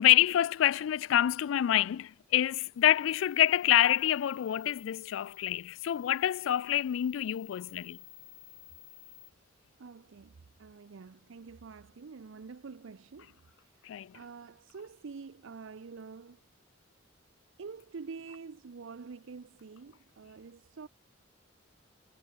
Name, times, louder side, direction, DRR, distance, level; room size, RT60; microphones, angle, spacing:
voice 1, 0.0-8.0 13.8-14.1, left 12 dB, 75° left, 0.3 m, -27 dB
sound 1, 2.8-9.3, left 12 dB, 30° left, 2.2 m, -54 dB
voice 2, 9.8-13.9 14.1-16.4 17.6-20.9, right 5 dB, 75° right, 0.5 m, -47 dB
head